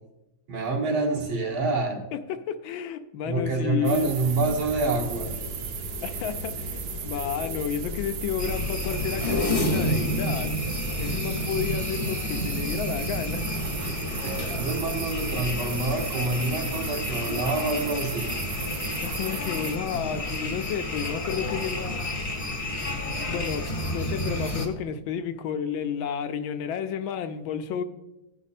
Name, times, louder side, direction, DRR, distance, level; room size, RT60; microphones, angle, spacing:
voice 1, 0.5-2.0 3.2-5.4 14.2-18.3, right 3 dB, 90° right, 1 dB, 2.4 m, -27 dB
voice 2, 2.1-4.1 6.0-10.5 11.0-13.7 19.0-22.0 23.0-27.8, left 8 dB, 80° left, 8 dB, 1.4 m, -31 dB
sound 1, 3.8-19.8, right 6 dB, 65° right, 1.1 m, -36 dB
sound 2, 4.5-15.9, left 4 dB, 50° left, 1.0 m, -39 dB
sound 3, 8.4-24.7, left 1 dB, 30° left, 0.6 m, -30 dB
15.5 x 5.3 x 4.1 m, 0.97 s
omnidirectional pair, 2.2 m